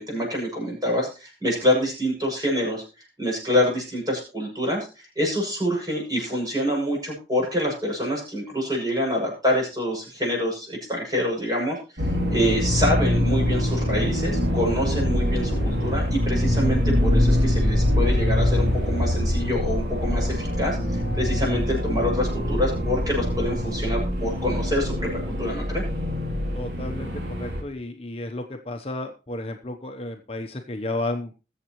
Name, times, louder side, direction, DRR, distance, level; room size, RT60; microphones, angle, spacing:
voice 1, 0.0-2.8 3.2-25.8, equal, 20° right, -1 dB, 6.9 m, -26 dB
sound 1, 12.0-27.6, left 1 dB, 75° right, 2.7 m, -24 dB
voice 2, 26.5-27.1 27.4-31.3, left 2 dB, 35° left, 4 dB, 0.9 m, -32 dB
21.5 x 7.4 x 3.1 m, 0.31 s
head